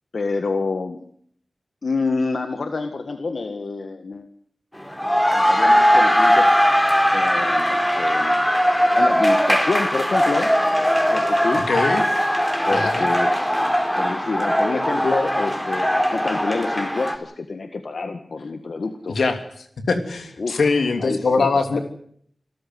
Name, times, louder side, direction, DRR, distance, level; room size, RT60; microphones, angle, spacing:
voice 1, 0.1-1.0 1.8-4.3 5.3-6.5 7.1-8.3 8.9-10.5 11.1-11.6 12.7-13.5 13.9-19.2 20.4-20.7 21.0-21.8, left 3 dB, 70° left, 8 dB, 1.7 m, -27 dB
sound 1, 4.8-17.1, equal, 10° left, 4.3 m, -19 dB
voice 2, 11.5-12.0 12.7-13.1 19.1-19.4 19.9-21.8, left 4 dB, 90° left, 7 dB, 2.9 m, -22 dB
26.5 x 14.0 x 9.5 m, 0.63 s
cardioid pair, 45°, 0 cm